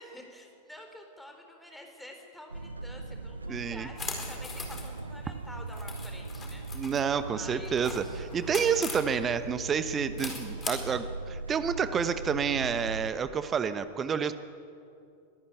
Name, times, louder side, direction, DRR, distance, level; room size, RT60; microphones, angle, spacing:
voice 1, 0.0-6.9 7.2-8.2, left 1 dB, ahead, 2 dB, 4.2 m, -48 dB
sound 1, 2.5-13.1, right 3 dB, 80° right, 0.7 m, -40 dB
voice 2, 3.5-3.9 6.7-14.3, right 7 dB, 25° right, 12 dB, 0.9 m, -29 dB
sound 2, 4.0-5.0 5.7-7.0 7.7-9.1 10.2-10.7, left 5 dB, 20° left, 4.3 m, -39 dB
22.5 x 14.5 x 9.3 m, 2.5 s
figure-of-eight pair, 90°, 0 cm